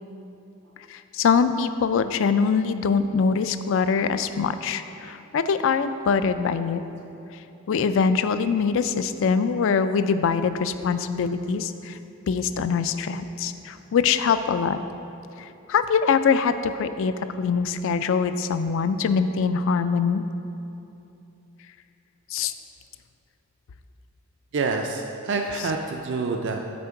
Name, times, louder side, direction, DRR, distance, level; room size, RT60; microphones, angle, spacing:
voice 1, 0.9-6.8 7.7-12.0 12.3-14.8 15.7-20.2 22.3-22.5, left 5 dB, 60° left, 11 dB, 0.3 m, -23 dB
voice 2, 24.5-26.6, right 4 dB, 55° right, 3 dB, 0.4 m, -27 dB
8.4 x 4.3 x 5.7 m, 2.9 s
head